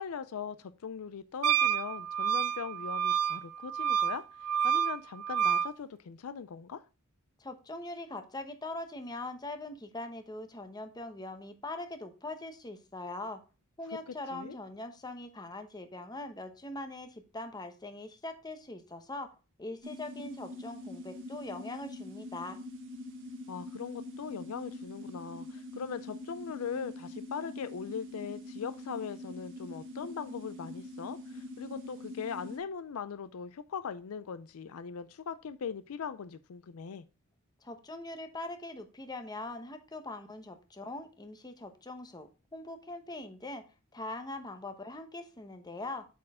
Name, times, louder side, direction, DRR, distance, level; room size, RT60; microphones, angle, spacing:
voice 1, 0.0-6.8 14.1-14.6 23.5-37.0, left 6 dB, 65° left, 0.4 m, -40 dB
Wind instrument woodwind instrument, 1.4-5.7, right 9 dB, 80° right, 0.4 m, -29 dB
voice 2, 7.4-13.4 13.8-19.3 19.6-22.6 37.6-43.6 43.9-46.1, left 2 dB, 20° left, 0.9 m, -42 dB
sound 1, 19.8-32.6, left 1 dB, 55° right, 1.6 m, -44 dB
8.4 x 4.4 x 3.6 m
head